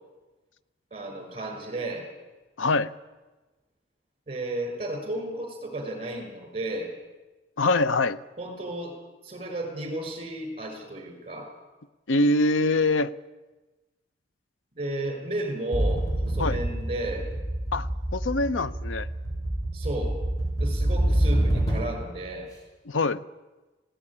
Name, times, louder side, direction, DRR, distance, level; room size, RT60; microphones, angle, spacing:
voice 1, 0.9-2.1 4.3-6.9 8.4-9.0 9.2-11.5 14.7-17.3 19.7-20.2 20.6-22.5, right 1 dB, 30° right, 4 dB, 6.0 m, -33 dB
voice 2, 2.6-2.9 7.6-8.2 12.1-13.1 16.4-16.6 17.7-19.1 22.9-23.2, left 2 dB, 85° left, 16 dB, 0.7 m, -24 dB
sound 1, 15.7-22.1, right 1 dB, 20° left, 7.2 m, -27 dB
19.0 x 17.0 x 10.0 m, 1.2 s
head